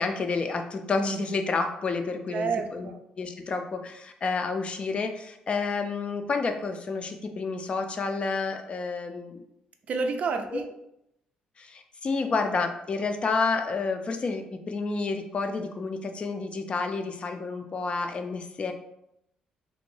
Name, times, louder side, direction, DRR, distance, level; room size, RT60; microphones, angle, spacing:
voice 1, 0.0-2.9 3.2-9.4 10.5-10.6 11.6-18.7, left 4 dB, 40° left, 6 dB, 0.4 m, -30 dB
voice 2, 2.3-3.0 9.9-10.7, right 4 dB, 55° right, 6 dB, 0.3 m, -29 dB
2.5 x 2.1 x 3.1 m, 0.80 s
supercardioid pair, 75°, 3 cm